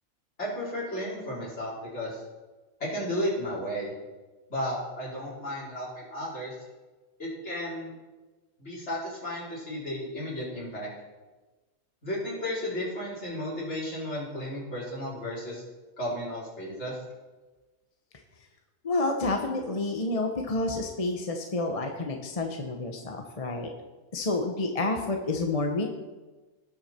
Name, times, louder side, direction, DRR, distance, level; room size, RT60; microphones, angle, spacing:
voice 1, 0.4-2.2 2.8-3.9 4.5-6.5 7.2-7.9 8.6-10.9 12.0-15.6 16.0-17.0, equal, 55° left, -7 dB, 4.4 m, -33 dB
voice 2, 18.8-23.7 24.1-25.9, left 2 dB, 30° left, 3 dB, 0.9 m, -29 dB
18.5 x 6.4 x 4.4 m, 1.2 s
omnidirectional pair, 1.4 m